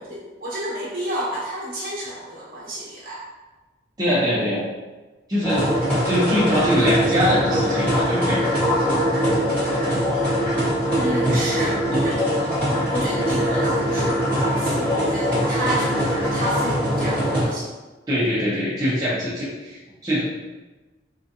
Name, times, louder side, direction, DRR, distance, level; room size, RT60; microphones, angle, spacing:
voice 1, 0.1-3.2 10.9-12.2 12.9-17.7, right 1 dB, 50° right, -6 dB, 1.1 m, -30 dB
voice 2, 4.0-4.6 5.3-5.8 6.0-8.4 11.2-11.4 18.1-20.2, equal, 20° right, -10 dB, 0.6 m, -22 dB
sound 1, 5.4-17.4, equal, 10° left, 1.2 m, -22 dB
3.7 x 2.4 x 2.7 m, 1.2 s
head